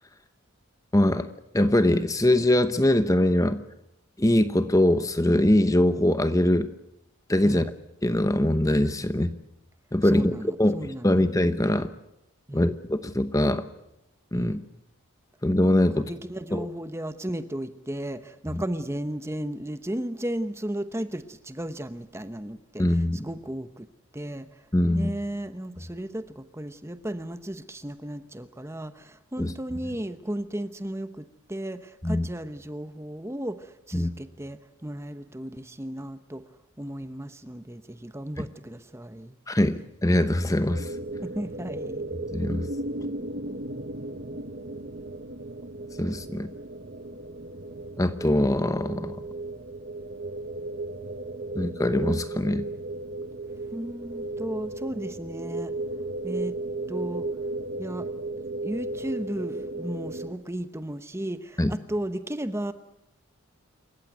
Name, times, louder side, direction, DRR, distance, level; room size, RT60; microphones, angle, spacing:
voice 1, 0.9-1.3 1.5-3.6 4.2-6.7 7.3-7.7 8.0-9.3 9.9-11.9 12.5-13.7 14.3-14.6 15.4-16.1 16.5-16.7 18.5-18.6 22.8-23.2 24.7-25.1 29.4-29.5 32.0-32.3 33.9-34.1 39.5-40.9 42.3-42.7 46.0-46.5 48.0-49.2 51.5-52.7 61.6-61.7, left 1 dB, 15° left, 11 dB, 0.9 m, -22 dB
voice 2, 10.0-11.2 12.5-12.7 14.3-14.6 15.9-23.9 24.1-36.4 36.8-39.4 41.2-42.1 53.7-55.7 56.2-56.5 56.9-57.3 57.8-58.1 58.6-62.7, right 1 dB, 10° right, 11 dB, 0.9 m, -35 dB
sound 1, 40.7-60.3, right 2 dB, 45° right, 1.4 m, -35 dB
28.0 x 15.0 x 9.3 m, 0.84 s
head